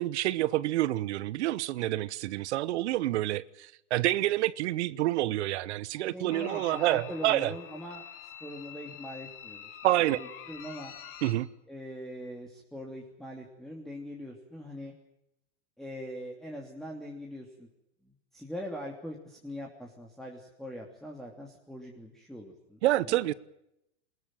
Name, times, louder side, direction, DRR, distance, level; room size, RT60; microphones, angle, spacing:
voice 1, 0.0-7.5 9.8-10.2 11.2-11.5 22.8-23.3, right 15 dB, 70° right, 1.0 m, -28 dB
voice 2, 5.9-9.8 10.1-10.9 11.7-14.9 15.8-17.7 18.0-22.8 23.1-23.3, equal, ahead, 3.1 m, -42 dB
sound 1, 6.3-11.3, left 9 dB, 35° left, 3.8 m, -46 dB
21.5 x 20.5 x 9.1 m
hypercardioid pair, 120°, 36 cm